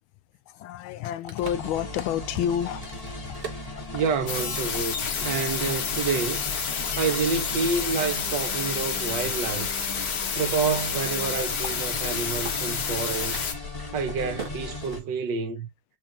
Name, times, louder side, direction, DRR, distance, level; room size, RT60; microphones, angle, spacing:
voice 1, 0.5-2.9 3.2-3.4 3.9-4.1 11.6-11.7, left 10 dB, 90° left, 1.4 m, -29 dB
Crack, 0.8-4.5 5.0-8.3 8.8-10.2 10.6-10.7 11.0-11.3 11.6-12.1 12.4-12.5 13.2-15.4, right 5 dB, 40° right, 0.8 m, -44 dB
sound 1, 1.4-15.0, left 3 dB, 30° left, 0.8 m, -37 dB
voice 2, 3.9-4.9 5.2-6.4 7.0-9.7 10.4-13.4 13.9-15.7, right 5 dB, 70° right, 1.4 m, -28 dB
sound 2, 4.3-13.5, left 6 dB, 55° left, 1.2 m, -29 dB
6.3 x 2.4 x 2.8 m
omnidirectional pair, 2.2 m